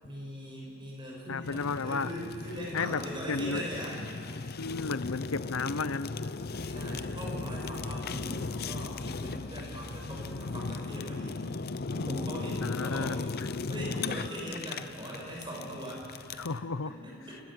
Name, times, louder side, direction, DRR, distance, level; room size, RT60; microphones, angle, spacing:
voice 1, 0.0-4.0 6.7-11.4 11.9-13.2 13.7-16.5 16.9-17.4, equal, 25° right, -3 dB, 7.5 m, -40 dB
voice 2, 1.3-2.1 2.7-3.0 3.3-3.6 4.6-6.1 12.6-13.3 16.4-16.9, left 4 dB, 90° left, 14 dB, 0.8 m, -32 dB
Fire, 1.4-16.6, left 3 dB, 50° left, 0.6 m, -37 dB
sound 1, 6.4-10.8, equal, 50° right, 3.3 m, -48 dB
28.0 x 19.5 x 7.8 m, 2.5 s
head